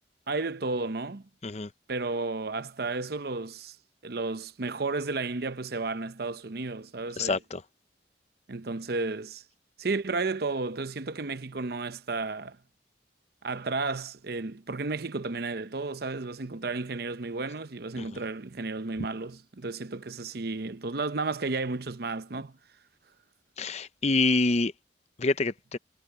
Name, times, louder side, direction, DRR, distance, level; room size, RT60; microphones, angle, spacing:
voice 1, 0.3-1.2 1.9-3.8 4.0-7.4 8.5-9.4 9.8-12.6 13.4-22.5, right 3 dB, 60° right, 0.8 m, -33 dB
voice 2, 7.2-7.6 18.0-18.1 23.6-24.7 25.2-25.8, left 3 dB, 35° left, 0.7 m, -26 dB
head